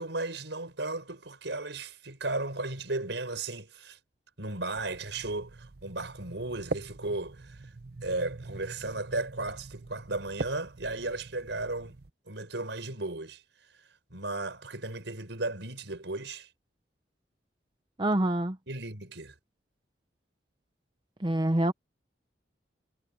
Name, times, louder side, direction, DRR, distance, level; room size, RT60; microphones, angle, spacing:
voice 1, 0.0-4.0 4.4-7.7 8.0-12.0 12.3-13.4 14.1-16.5 18.7-19.3, right 2 dB, 75° right, 4.9 m, -35 dB
sound 1, 4.7-12.1, right 3 dB, 55° right, 0.8 m, -42 dB
voice 2, 18.0-18.6 21.2-21.7, right 1 dB, 25° right, 0.7 m, -26 dB
head